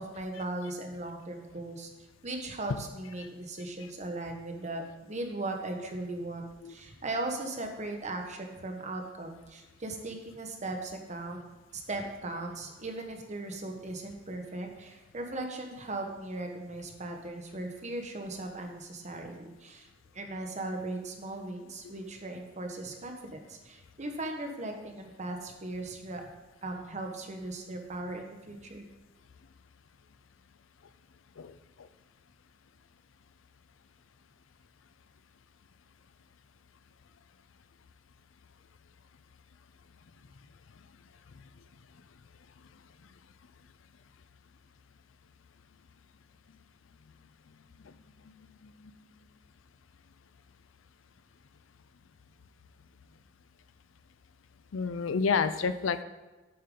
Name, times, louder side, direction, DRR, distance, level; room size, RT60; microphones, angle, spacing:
voice 1, 0.0-1.9 2.2-11.4 11.7-19.9 20.1-26.2 26.6-28.9, right 2 dB, 35° right, 3 dB, 1.2 m, -38 dB
voice 2, 54.7-56.0, left 5 dB, 85° left, 13 dB, 0.5 m, -29 dB
8.7 x 8.5 x 3.9 m, 1.2 s
head